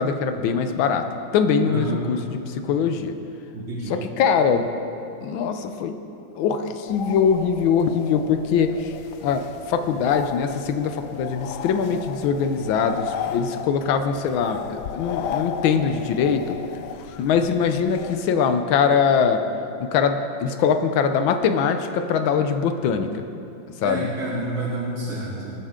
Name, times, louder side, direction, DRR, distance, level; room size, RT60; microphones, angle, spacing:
voice 1, 0.0-3.2 3.9-4.7 5.2-6.0 6.4-8.9 9.2-16.6 17.2-19.4 19.8-23.2 23.8-24.1, left 6 dB, 90° left, 8 dB, 1.5 m, -22 dB
voice 2, 1.7-2.0 3.5-4.0 23.8-25.5, right 1 dB, 85° right, -6 dB, 2.5 m, -29 dB
sound 1, 6.9-18.2, left 8 dB, 70° left, 1.1 m, -35 dB
20.5 x 10.0 x 3.7 m, 2.7 s
omnidirectional pair, 2.1 m